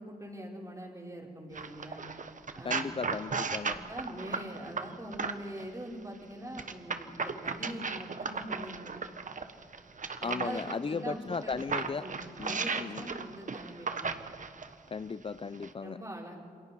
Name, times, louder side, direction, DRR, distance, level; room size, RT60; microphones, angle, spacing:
voice 1, 0.0-2.1 2.5-3.0 3.7-9.0 10.2-11.7 12.0-14.2 15.8-16.4, right 1 dB, 20° right, -2 dB, 5.7 m, -43 dB
sound 1, 1.5-5.6 6.5-10.7 11.3-14.7 15.5-15.7, right 5 dB, 55° right, 1.4 m, -36 dB
voice 2, 2.6-3.8 10.2-12.0 12.4-13.1 14.9-16.0, left 5 dB, 35° left, 13 dB, 0.5 m, -36 dB
28.0 x 22.0 x 4.7 m, 2.4 s
cardioid pair, 55°, 16 cm